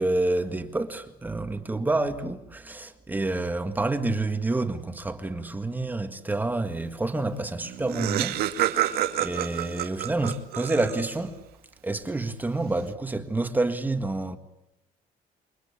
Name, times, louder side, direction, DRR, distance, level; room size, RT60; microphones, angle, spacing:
voice 1, 0.0-11.4 11.8-14.4, right 2 dB, 10° right, 1.8 m, -28 dB
Laughter, 7.3-7.4 7.6-11.3, right 12 dB, 85° right, 1.9 m, -28 dB
28.5 x 23.5 x 8.6 m
cardioid pair, 150°, 16 cm